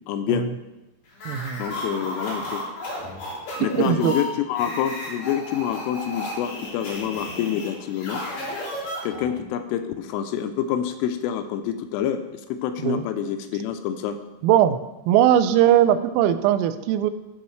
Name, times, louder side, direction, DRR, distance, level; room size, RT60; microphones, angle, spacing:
voice 1, 0.1-0.5 1.6-2.6 3.6-8.2 9.0-14.2, left 9 dB, 85° left, 8 dB, 3.0 m, -27 dB
sound 1, 1.1-9.4, left 1 dB, 55° left, 4.4 m, -33 dB
voice 2, 1.3-1.7 3.7-4.2 12.8-13.1 14.4-14.8 15.1-17.1, right 11 dB, 90° right, 11 dB, 3.2 m, -19 dB
16.0 x 5.4 x 3.1 m, 1.0 s
omnidirectional pair, 5.8 m